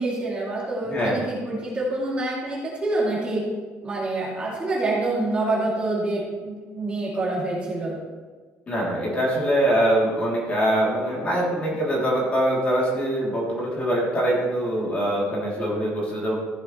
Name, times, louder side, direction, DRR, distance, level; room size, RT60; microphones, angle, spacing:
voice 1, 0.0-3.5 3.8-8.0, right 2 dB, 20° right, -6 dB, 2.8 m, -26 dB
voice 2, 8.7-16.3, right 1 dB, 25° left, -5 dB, 3.1 m, -23 dB
15.0 x 7.4 x 3.3 m, 1.5 s
cardioid pair, 150°, 5 cm